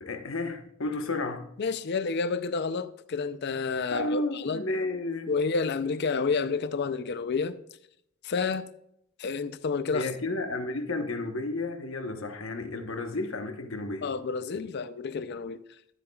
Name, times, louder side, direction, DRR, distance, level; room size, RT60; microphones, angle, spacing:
voice 1, 0.0-1.5 3.9-5.4 9.9-14.2, left 2 dB, 75° left, 1.1 m, -32 dB
voice 2, 1.6-4.6 5.3-7.6 8.2-8.6 9.2-10.1 14.0-15.6, left 4 dB, 55° left, 0.5 m, -29 dB
13.0 x 8.2 x 2.3 m
head